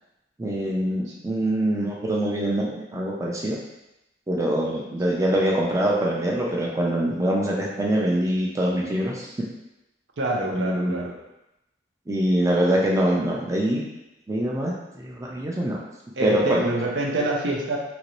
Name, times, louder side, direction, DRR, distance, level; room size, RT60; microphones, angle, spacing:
voice 1, 0.4-3.6 4.3-9.5 10.5-11.0 12.1-13.8 14.3-15.8 16.2-16.7, right 1 dB, 20° right, -3 dB, 0.4 m, -24 dB
voice 2, 10.2-11.1 16.2-17.8, right 2 dB, 90° right, -1 dB, 0.6 m, -26 dB
2.9 x 2.7 x 3.0 m, 0.92 s
head